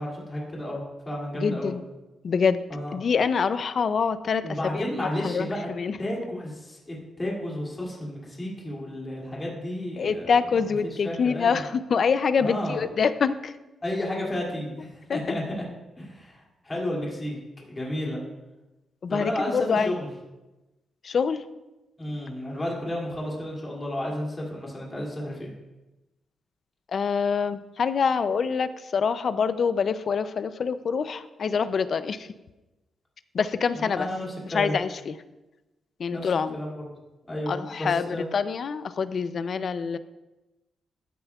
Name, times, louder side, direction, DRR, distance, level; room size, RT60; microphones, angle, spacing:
voice 1, 0.0-1.8 2.7-3.0 4.4-5.7 6.0-10.3 10.8-11.6 12.4-12.8 13.8-15.6 16.0-18.2 19.1-20.1 22.0-25.5 33.7-34.8 36.1-36.7 37.3-38.3, left 1 dB, 20° left, -3 dB, 2.6 m, -32 dB
voice 2, 1.4-1.8 2.2-2.6 2.9-4.9 5.2-5.5 5.8-6.0 10.0-13.6 15.1-15.2 19.0-19.9 21.0-21.4 26.9-32.3 33.3-34.1 34.5-35.2 36.0-36.6 37.5-38.1 38.3-40.0, left 6 dB, 45° left, 13 dB, 0.4 m, -25 dB
13.5 x 9.2 x 2.4 m, 1.0 s
wide cardioid pair, 155°, 0 cm